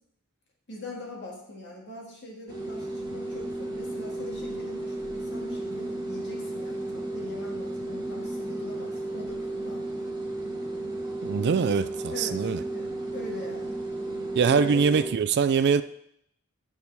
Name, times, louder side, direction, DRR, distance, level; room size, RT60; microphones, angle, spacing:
voice 1, 0.7-10.1 11.4-11.6 12.1-12.9 13.1-13.8 14.5-15.0, left 2 dB, 55° left, -1 dB, 2.0 m, -42 dB
sound 1, 2.5-15.1, right 2 dB, 20° right, 1.6 m, -34 dB
voice 2, 11.2-12.6 14.4-15.8, right 6 dB, 50° right, 13 dB, 0.4 m, -23 dB
9.6 x 6.2 x 3.4 m, 0.72 s
head